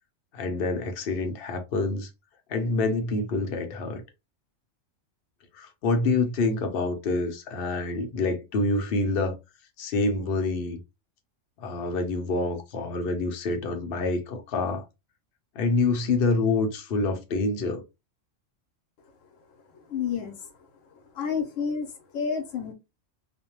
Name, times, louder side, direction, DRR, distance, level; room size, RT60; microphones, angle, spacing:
voice 1, 0.3-2.1 2.5-4.0 5.6-9.4 9.8-10.8 11.6-14.8 15.6-17.8, left 3 dB, 55° left, 0.8 m, -27 dB
voice 2, 19.9-20.3 21.2-21.9 22.1-22.7, left 6 dB, 85° left, 1.0 m, -29 dB
2.5 x 2.1 x 2.9 m
omnidirectional pair, 1.3 m